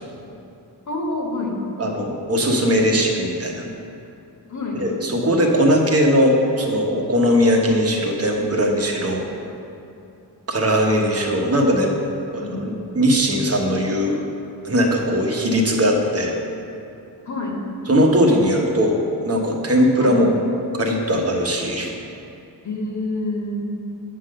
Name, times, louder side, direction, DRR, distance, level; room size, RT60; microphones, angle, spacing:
voice 1, 0.9-1.5 4.5-4.8 12.4-12.6 17.3-17.6 20.0-20.2 22.6-23.5, left 2 dB, 45° left, -1 dB, 1.4 m, -27 dB
voice 2, 1.8-3.6 4.7-9.2 10.5-12.0 12.3-14.2 14.6-16.3 17.9-20.3 20.8-21.9, equal, 35° right, 1 dB, 1.0 m, -19 dB
8.7 x 3.8 x 6.4 m, 2.7 s
wide cardioid pair, 110°, 41 cm